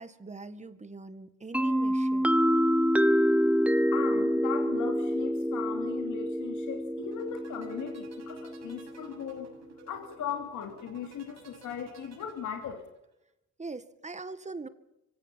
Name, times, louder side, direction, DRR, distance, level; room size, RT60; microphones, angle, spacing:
voice 1, 0.0-2.3 13.6-14.7, right 3 dB, 25° right, 12 dB, 1.9 m, -42 dB
sound 1, 1.5-9.2, equal, 5° right, 1.0 m, -27 dB
voice 2, 3.9-9.5 9.9-12.9, left 8 dB, 80° left, 3 dB, 2.8 m, -38 dB
sound 2, 7.0-13.0, right 6 dB, 60° right, 7.1 m, -54 dB
24.0 x 17.5 x 7.3 m, 0.87 s
cardioid pair, 90°, 30 cm